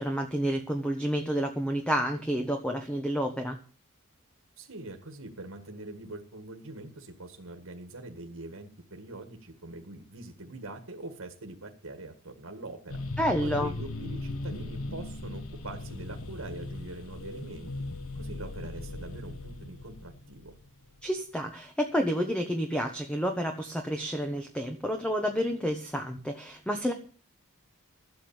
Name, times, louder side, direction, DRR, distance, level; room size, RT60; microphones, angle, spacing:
voice 1, 0.0-3.6 13.2-13.7 21.0-26.9, equal, 5° left, 4 dB, 1.2 m, -29 dB
voice 2, 4.6-13.0 13.4-17.7 18.2-20.6, right 2 dB, 70° right, 5 dB, 1.9 m, -43 dB
sound 1, 12.9-21.0, left 2 dB, 70° left, 1.4 m, -38 dB
12.5 x 8.6 x 7.1 m, 0.40 s
head